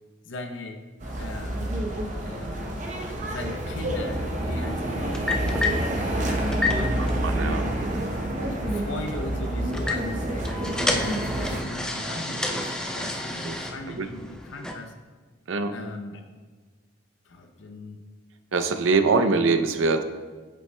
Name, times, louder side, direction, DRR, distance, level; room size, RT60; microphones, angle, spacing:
voice 1, 0.2-0.8 1.2-1.8 2.2-2.9 3.2-5.8 6.3-7.1 8.0-10.6 10.9-12.7 12.9-15.0 15.7-16.2 17.2-18.0, left 2 dB, 70° left, 4 dB, 0.5 m, -38 dB
sound 1, 1.0-11.6, right 1 dB, 40° right, 0.6 m, -28 dB
sound 2, 1.1-14.7, left 2 dB, 5° left, 0.3 m, -33 dB
voice 2, 7.2-8.1 13.4-13.6 14.0-14.1 15.5-15.7 18.5-20.0, right 4 dB, 80° right, 9 dB, 0.5 m, -23 dB
8.0 x 7.7 x 2.2 m, 1.4 s
head